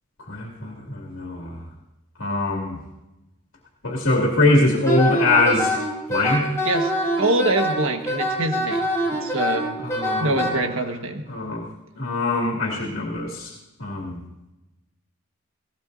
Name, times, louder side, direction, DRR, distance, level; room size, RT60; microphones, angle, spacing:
voice 1, 0.3-1.6 2.2-2.8 3.8-5.8 6.1-6.5 9.8-10.6 11.3-11.7 12.0-13.5 13.8-14.2, left 2 dB, 80° left, -2 dB, 2.5 m, -22 dB
Wind instrument woodwind instrument, 4.8-10.5, equal, 15° left, 3.7 m, -24 dB
voice 2, 6.6-8.8 9.2-9.7 10.2-11.2, right 2 dB, 85° right, 5 dB, 1.5 m, -24 dB
19.0 x 17.0 x 2.7 m, 1.0 s
head